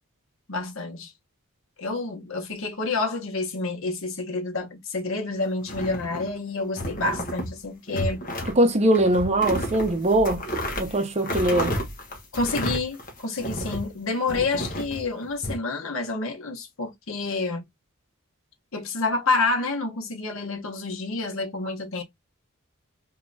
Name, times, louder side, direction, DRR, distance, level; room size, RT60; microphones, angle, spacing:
voice 1, 0.5-1.1 1.8-8.2 11.3-11.4 12.3-17.6 18.7-22.0, left 3 dB, 65° left, 1.2 m, -28 dB
sound 1, 5.6-6.4 6.8-7.5 7.9-8.6 8.9-13.9 14.3-15.5, equal, 40° left, 1.2 m, -31 dB
voice 2, 8.5-10.4 10.8-11.7, right 1 dB, 30° right, 0.8 m, -21 dB
3.7 x 2.9 x 2.4 m
head